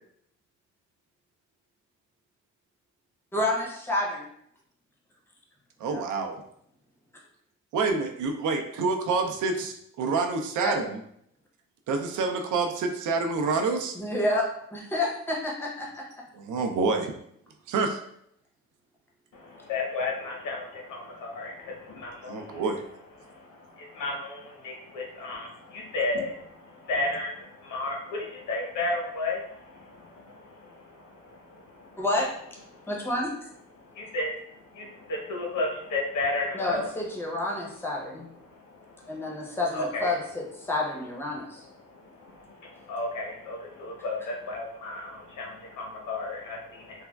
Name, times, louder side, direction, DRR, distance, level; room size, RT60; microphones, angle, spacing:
voice 1, 3.3-4.3 5.9-6.0 10.6-10.8 13.9-16.1 32.0-32.3 32.9-33.3 36.5-38.3 39.1-41.7, left 1 dB, 5° left, -2 dB, 0.6 m, -29 dB
voice 2, 5.8-6.3 7.7-10.9 11.9-13.9 16.4-17.1 17.7-18.0 22.3-22.8, right 4 dB, 70° right, 4 dB, 0.5 m, -27 dB
voice 3, 19.3-22.6 23.2-32.0 32.7-32.9 33.9-36.9 38.5-39.2 39.4-40.1 41.8-47.0, left 2 dB, 75° left, -1 dB, 0.9 m, -34 dB
3.5 x 2.2 x 2.2 m, 0.69 s
cardioid pair, 135°, 32 cm